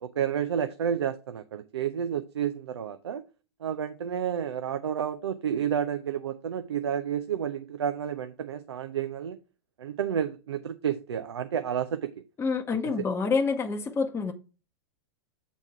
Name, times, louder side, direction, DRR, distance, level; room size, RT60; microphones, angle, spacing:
voice 1, 0.0-3.2 3.6-9.4 9.8-12.2 13.0-13.1, right 8 dB, 85° right, 0.6 m, -30 dB
voice 2, 12.4-14.3, left 4 dB, 20° left, 0.8 m, -27 dB
7.4 x 4.1 x 4.7 m
hypercardioid pair, 105°, 14 cm